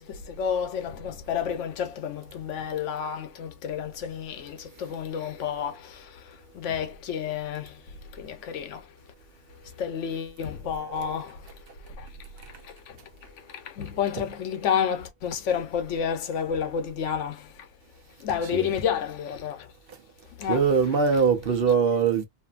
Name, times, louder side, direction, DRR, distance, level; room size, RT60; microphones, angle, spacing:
voice 1, 0.0-7.8 8.1-8.8 9.8-11.4 12.0-12.1 12.6-13.0 13.5-17.5 18.2-19.7 20.4-21.0, left 7 dB, 85° left, 1.0 m, -30 dB
voice 2, 10.8-11.2 14.2-14.3 18.4-18.7 19.9-20.0 20.4-22.2, right 6 dB, 60° right, 0.9 m, -23 dB
2.6 x 2.6 x 2.4 m
omnidirectional pair, 1.2 m